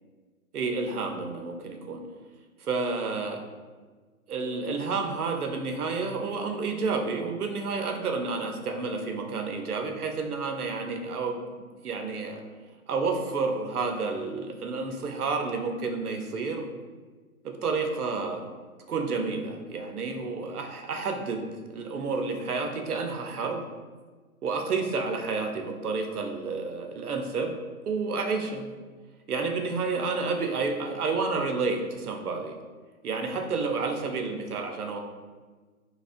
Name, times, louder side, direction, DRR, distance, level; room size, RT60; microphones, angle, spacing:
voice 1, 0.5-2.0 2.6-3.4 4.3-12.4 12.9-16.8 17.4-18.4 18.9-21.4 21.7-23.6 24.4-27.6 27.8-28.7 29.3-32.5 33.0-35.0, right 4 dB, 90° right, 4 dB, 0.7 m, -30 dB
4.1 x 2.9 x 2.4 m, 1.4 s
hypercardioid pair, 150°, 43 cm